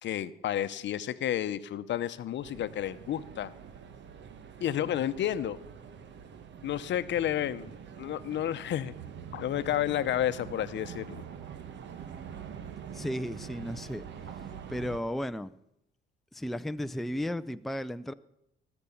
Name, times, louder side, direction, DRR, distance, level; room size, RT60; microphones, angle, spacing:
voice 1, 0.0-3.5 4.6-5.6 6.6-8.9 9.3-11.2, left 11 dB, 65° left, 0.8 m, -31 dB
sound 1, 2.4-15.0, right 8 dB, 65° right, 1.2 m, -45 dB
voice 2, 12.9-14.1 14.7-15.5 16.3-18.1, equal, ahead, 0.5 m, -34 dB
18.5 x 7.0 x 7.0 m
cardioid pair, 90°, 20 cm